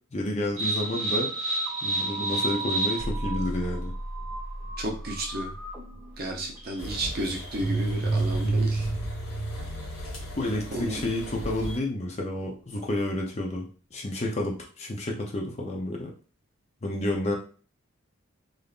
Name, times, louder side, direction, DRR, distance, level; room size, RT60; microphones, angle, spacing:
voice 1, 0.1-1.3 1.8-3.9 10.4-16.1 16.8-17.4, left 1 dB, 30° left, 0 dB, 0.5 m, -30 dB
sound 1, 0.6-11.2, right 2 dB, 10° right, 1.4 m, -31 dB
voice 2, 4.8-5.5 6.2-8.9 10.7-11.0, right 1 dB, 45° right, 1 dB, 0.7 m, -32 dB
sound 2, 6.8-11.8, equal, 70° left, 1.2 m, -39 dB
3.5 x 2.6 x 2.4 m, 0.38 s
head